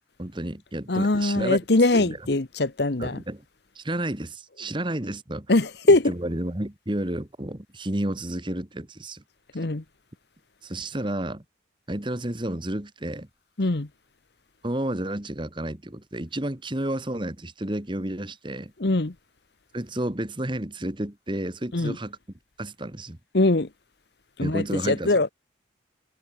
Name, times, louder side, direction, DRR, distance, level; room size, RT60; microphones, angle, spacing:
voice 1, 0.2-1.6 1.9-2.2 3.0-3.4 3.7-5.5 6.1-9.2 10.6-11.4 11.9-13.3 14.6-18.7 19.7-22.2 22.6-23.2 24.4-25.2, right 1 dB, 25° right, 1.5 m, -31 dB
voice 2, 0.9-3.2 5.5-6.1 9.5-9.8 13.6-13.9 18.8-19.1 21.7-22.0 23.3-23.7 24.4-25.3, left 2 dB, 55° left, 1.0 m, -22 dB
head